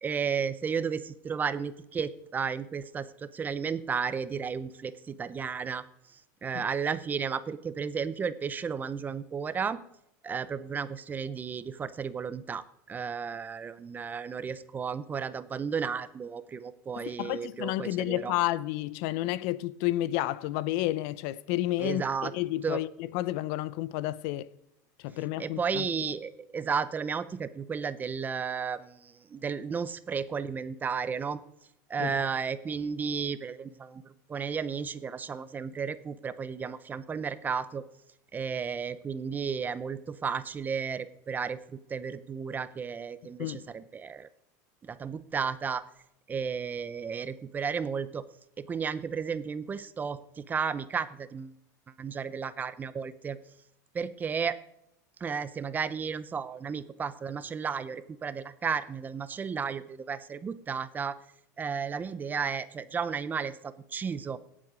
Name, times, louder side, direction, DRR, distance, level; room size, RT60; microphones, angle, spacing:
voice 1, 0.0-5.8 6.1-9.8 10.2-18.3 21.8-22.3 22.6-22.8 25.4-31.4 31.9-37.8 38.3-44.3 44.8-45.9 46.3-48.3 48.6-51.6 52.0-53.4 53.9-54.6 55.2-61.2 61.6-64.4, right 6 dB, 20° right, 0.6 m, -33 dB
voice 2, 17.0-22.0 22.3-24.5 25.0-25.9 32.0-32.3 43.4-43.6, left 16 dB, 60° left, 0.6 m, -31 dB
17.5 x 7.5 x 5.0 m
supercardioid pair, 140°, 9 cm